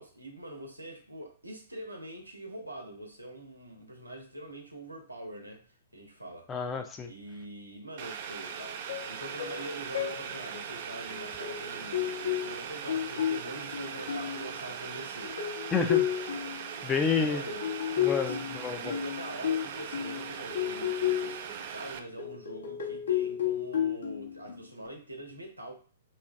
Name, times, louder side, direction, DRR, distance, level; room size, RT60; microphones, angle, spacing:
voice 1, 0.0-5.7 5.9-6.5 7.0-15.4 17.1-17.7 18.2-18.5 18.8-25.7, right 1 dB, 90° right, 0.9 m, -44 dB
voice 2, 6.5-7.1 15.7-16.1 16.8-17.4 18.0-18.9, left 5 dB, 15° left, 0.5 m, -29 dB
Boiling, 8.0-22.0, right 7 dB, 45° right, 0.4 m, -40 dB
sound 1, 8.6-9.1 9.4-9.6 9.9-10.2 11.1-14.5 15.2-16.6 17.5-21.5 22.2-24.9, left 10 dB, 65° left, 0.9 m, -32 dB
2.7 x 2.5 x 3.3 m
figure-of-eight pair, 115°, 0 cm